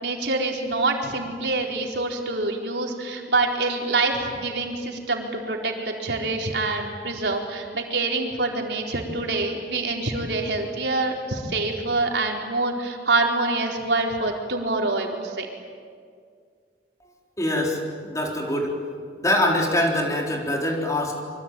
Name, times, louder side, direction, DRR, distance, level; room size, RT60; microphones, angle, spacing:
voice 1, 0.0-15.5, right 3 dB, 80° right, 1 dB, 4.2 m, -26 dB
voice 2, 17.4-18.7 19.2-21.2, left 1 dB, 20° left, 0 dB, 4.1 m, -24 dB
26.0 x 25.0 x 9.2 m, 2.1 s
head